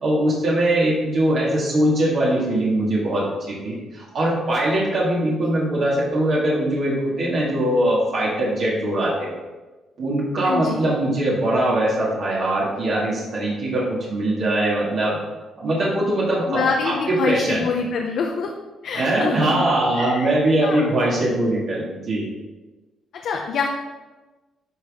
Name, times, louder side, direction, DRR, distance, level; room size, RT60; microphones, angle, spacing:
voice 1, 0.0-9.3 10.0-15.2 15.6-17.7 18.9-22.3, right 1 dB, 60° right, -6 dB, 2.1 m, -21 dB
voice 2, 10.4-10.8 16.5-18.5 18.8-19.7 20.0-20.3 20.6-20.9 23.1-23.7, left 5 dB, 70° left, 2 dB, 0.7 m, -25 dB
11.5 x 4.1 x 3.6 m, 1.2 s
cardioid pair, 90°, 0 cm